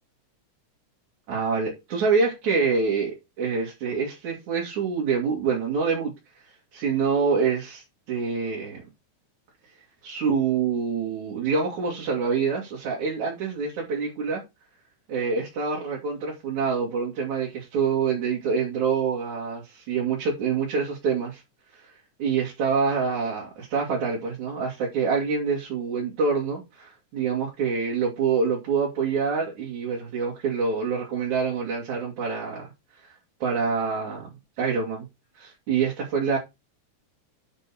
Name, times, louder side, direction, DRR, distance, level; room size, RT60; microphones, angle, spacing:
voice 1, 1.3-6.1 6.7-8.8 10.0-14.4 15.1-21.4 21.7-21.9 22.2-32.7 33.4-34.3 34.6-35.1 35.4-36.4, right 5 dB, 70° right, 3.8 m, -26 dB
8.9 x 6.7 x 4.3 m
omnidirectional pair, 3.5 m